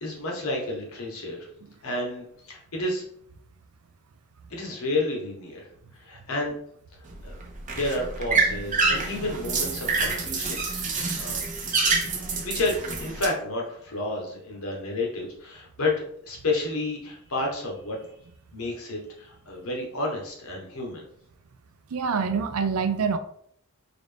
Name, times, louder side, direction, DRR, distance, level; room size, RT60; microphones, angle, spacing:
voice 1, 0.0-1.5 1.8-3.0 4.5-6.5 7.2-7.4 7.7-10.9 11.2-11.4 12.1-18.0 18.5-21.0, left 2 dB, 70° left, 0 dB, 1.1 m, -31 dB
sound 1, 7.1-13.3, right 4 dB, 35° right, 0.7 m, -27 dB
voice 2, 21.9-23.2, right 5 dB, 75° right, 9 dB, 0.4 m, -25 dB
3.9 x 2.5 x 3.4 m, 0.66 s
head